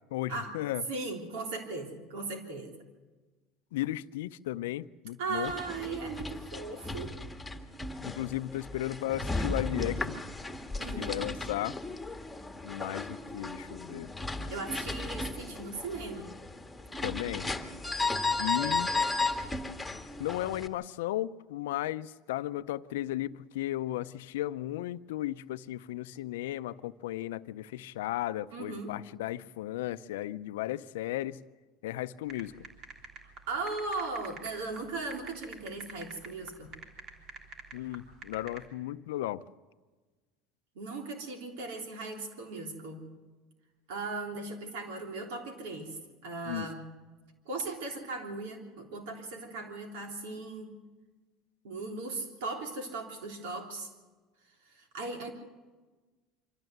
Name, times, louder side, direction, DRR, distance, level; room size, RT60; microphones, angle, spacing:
voice 1, 0.1-0.9 3.7-5.5 8.0-10.2 11.0-11.8 12.6-14.1 17.0-17.5 18.4-18.9 20.2-31.4 31.8-32.5 37.7-39.4 46.5-46.7, left 14 dB, 85° left, 0.6 m, -35 dB
voice 2, 0.9-2.7 5.2-7.2 10.8-11.3 14.5-16.3 18.6-18.7 28.5-28.9 33.5-36.8 40.7-43.1 43.9-46.9 47.4-50.7 51.6-53.9 54.6-55.3, right 3 dB, 80° right, 3.4 m, -38 dB
sound 1, 5.3-20.7, left 3 dB, 5° left, 1.7 m, -35 dB
sound 2, 32.3-38.6, right 4 dB, 55° right, 3.5 m, -46 dB
25.0 x 14.5 x 7.9 m
supercardioid pair, 105°, 0 cm